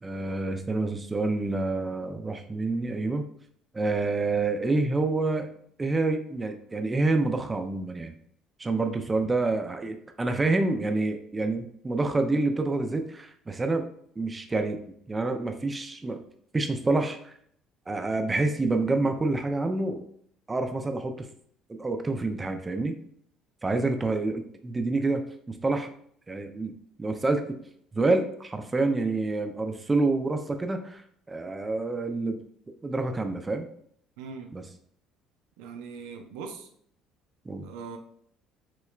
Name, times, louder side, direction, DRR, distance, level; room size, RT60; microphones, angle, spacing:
voice 1, 0.0-3.3 3.7-5.5 5.8-8.1 8.6-13.9 14.2-14.8 15.1-16.2 16.5-17.3 17.9-20.0 20.5-21.3 21.8-23.0 23.6-25.9 26.3-26.7 27.0-27.6 27.9-32.4 32.8-33.7 34.5-34.6 37.5-37.7, right 3 dB, 20° right, 6 dB, 0.5 m, -27 dB
voice 2, 34.2-34.5 35.6-36.7 37.6-38.0, right 5 dB, 90° right, 5 dB, 0.5 m, -40 dB
5.9 x 2.1 x 2.4 m, 0.64 s
supercardioid pair, 90°, 0 cm